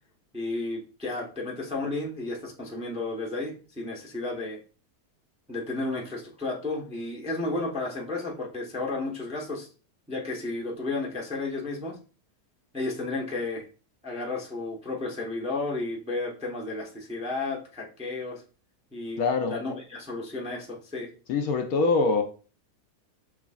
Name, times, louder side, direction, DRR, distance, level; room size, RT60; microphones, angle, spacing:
voice 1, 0.3-4.6 5.5-9.7 10.1-12.0 12.7-13.7 14.0-18.4 18.9-21.1, left 2 dB, 5° right, 0.6 m, -33 dB
voice 2, 19.2-19.5 21.3-22.2, left 4 dB, 70° left, 1.0 m, -23 dB
5.9 x 3.1 x 2.4 m
omnidirectional pair, 1.8 m